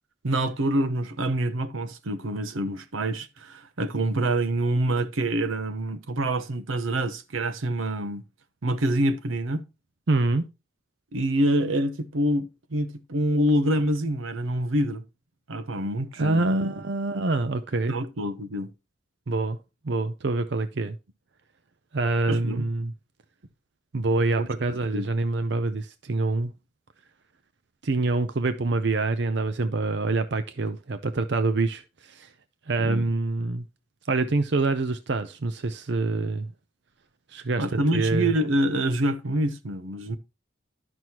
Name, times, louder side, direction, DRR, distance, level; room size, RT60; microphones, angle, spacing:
voice 1, 0.2-8.2 8.6-9.6 11.1-15.0 15.5-16.6 17.9-18.7 22.3-22.6 24.4-25.1 32.8-33.0 37.6-40.2, right 1 dB, 85° right, 0.8 m, -26 dB
voice 2, 10.1-10.4 16.2-17.9 19.3-19.6 19.8-21.0 21.9-22.9 23.9-26.5 27.8-32.3 32.7-33.6 34.1-36.5 37.3-37.6 37.9-38.3, right 3 dB, 60° right, 0.6 m, -26 dB
11.0 x 6.1 x 2.9 m
head